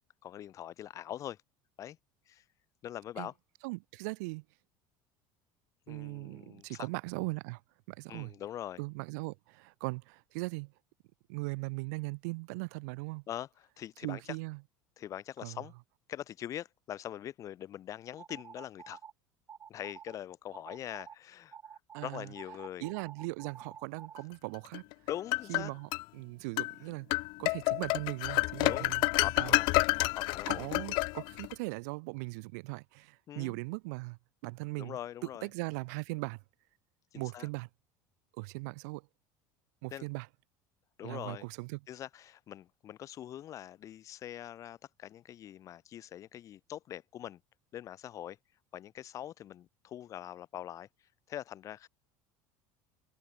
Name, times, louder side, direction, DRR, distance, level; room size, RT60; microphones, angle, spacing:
voice 1, 0.2-1.4 1.8-2.0 2.3-2.4 2.8-3.3 5.9-6.9 8.1-8.8 13.3-14.4 15.0-15.7 16.1-19.0 19.7-21.6 22.0-22.9 25.1-25.7 28.6-30.6 33.3-33.6 34.8-35.5 37.1-37.5 39.9-40.1 41.0-41.5 41.9-47.4 47.7-48.4 48.7-50.9 51.3-51.9, left 11 dB, 40° left, 2.6 m, -43 dB
voice 2, 3.6-4.4 5.9-7.6 7.9-8.3 8.8-10.7 11.3-13.2 14.0-14.6 15.4-15.6 21.9-22.3 22.8-24.8 25.5-29.0 29.4-29.6 30.5-35.0 35.4-36.4 37.1-37.7 38.4-39.1 39.8-40.3 41.0-41.8, right 28 dB, 85° right, 1.5 m, -39 dB
sound 1, 18.2-19.1 19.5-20.2 20.5-21.1 21.5-24.2, right 7 dB, 25° right, 5.0 m, -49 dB
sound 2, 24.7-26.0 26.6-26.7 27.1-31.5, left 26 dB, 60° left, 0.7 m, -29 dB
cardioid pair, 150°, 9 cm